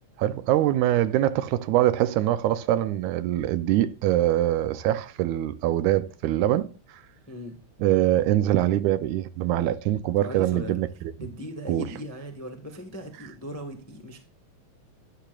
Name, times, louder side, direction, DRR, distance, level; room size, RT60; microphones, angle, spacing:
voice 1, 0.2-6.7 7.8-10.9 11.7-11.8, right 13 dB, 90° right, 2.1 m, -23 dB
voice 2, 7.3-7.6 10.2-10.8 11.2-14.2, equal, 15° left, 0.5 m, -38 dB
12.0 x 10.0 x 2.4 m
omnidirectional pair, 3.3 m